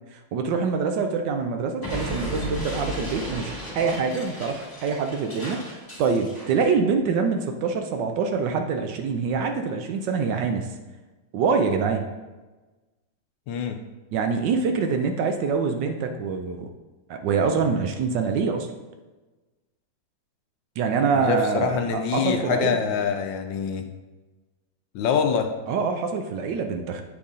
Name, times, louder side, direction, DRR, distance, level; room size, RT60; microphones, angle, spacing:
voice 1, 0.1-10.7 11.3-12.0 14.1-16.7 17.1-18.7 20.8-22.9 25.7-27.0, right 5 dB, 75° right, 5 dB, 1.2 m, -25 dB
Explosion, 1.8-6.6, equal, 10° left, 1.5 m, -34 dB
voice 2, 13.5-13.8 21.1-23.9 24.9-25.5, left 7 dB, 75° left, 6 dB, 1.2 m, -25 dB
8.4 x 4.0 x 3.6 m, 1.2 s
omnidirectional pair, 2.2 m